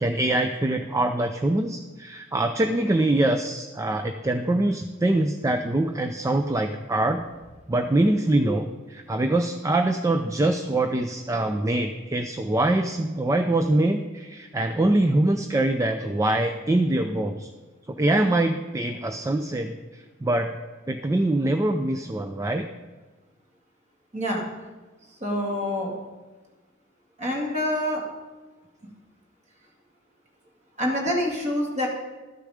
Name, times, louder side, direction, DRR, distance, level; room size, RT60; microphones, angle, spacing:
voice 1, 0.0-7.2 7.7-17.5 17.9-20.5 20.9-22.7, right 1 dB, 15° right, 7 dB, 0.4 m, -24 dB
voice 2, 24.1-24.5 25.2-25.9 27.2-28.0 30.8-31.9, left 1 dB, 35° right, -1 dB, 2.1 m, -26 dB
12.5 x 6.7 x 5.0 m, 1.3 s
head